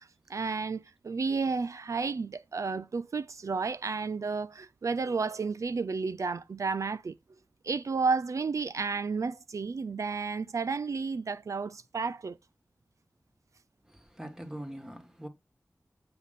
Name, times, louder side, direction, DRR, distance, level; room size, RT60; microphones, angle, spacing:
voice 1, 0.0-7.1 7.6-12.4, right 4 dB, 80° right, 0.4 m, -32 dB
voice 2, 13.8-15.3, right 1 dB, 10° right, 1.7 m, -43 dB
7.8 x 5.2 x 4.1 m
wide cardioid pair, 65°, 5 cm